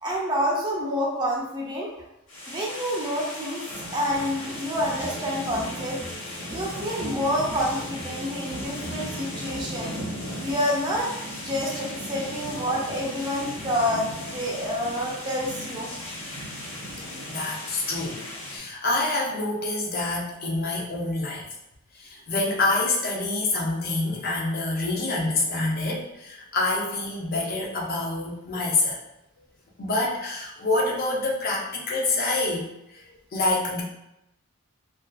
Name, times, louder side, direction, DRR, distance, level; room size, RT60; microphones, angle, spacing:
voice 1, 0.0-1.9 2.5-3.6 3.9-6.0 6.5-9.9 10.4-15.9, equal, 20° right, -3 dB, 0.5 m, -28 dB
sound 1, 2.3-18.6, left 1 dB, 60° left, 0.9 m, -36 dB
sound 2, 4.8-10.5, equal, 75° right, 0.6 m, -40 dB
voice 2, 17.3-21.4 21.9-29.0 29.8-33.0 33.3-33.8, left 2 dB, 45° left, -3 dB, 0.5 m, -27 dB
2.5 x 2.2 x 2.3 m, 0.86 s
head